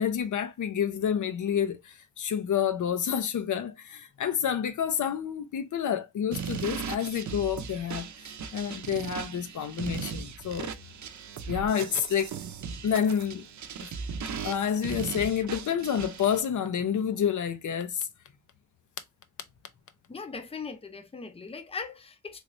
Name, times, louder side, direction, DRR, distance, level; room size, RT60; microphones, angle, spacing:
voice 1, 0.0-8.1 8.5-10.7 11.5-12.3 12.8-13.4 13.8-13.9 14.4-18.1, left 8 dB, 80° left, 0.6 m, -29 dB
sound 1, 6.3-16.4, right 6 dB, 70° right, 0.6 m, -38 dB
voice 2, 20.1-22.4, left 5 dB, 20° left, 0.6 m, -39 dB
3.2 x 3.1 x 2.5 m
wide cardioid pair, 145°, 30 cm